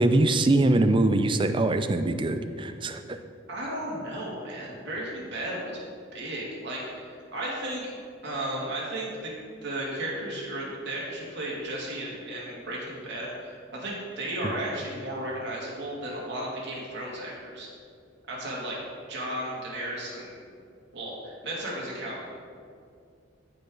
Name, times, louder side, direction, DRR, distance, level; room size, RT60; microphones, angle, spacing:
voice 1, 0.0-3.2 14.4-14.5, right 2 dB, 25° right, 9 dB, 0.4 m, -23 dB
voice 2, 3.5-5.8 6.1-9.3 9.6-17.7 18.3-18.8 19.1-20.4 20.9-22.3, right 1 dB, 60° right, -4 dB, 2.4 m, -34 dB
14.5 x 5.4 x 3.9 m, 2.3 s
head